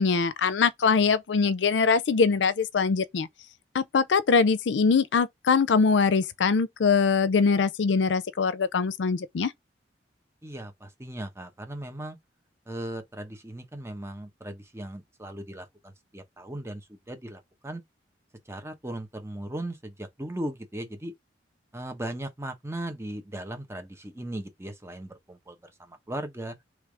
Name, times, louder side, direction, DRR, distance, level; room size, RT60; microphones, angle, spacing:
voice 1, 0.0-3.3 3.7-9.5, left 5 dB, 85° left, 0.5 m, -23 dB
voice 2, 10.4-12.2 12.7-17.8 18.5-21.1 21.7-26.5, right 1 dB, 15° right, 1.0 m, -37 dB
3.4 x 3.1 x 4.8 m
head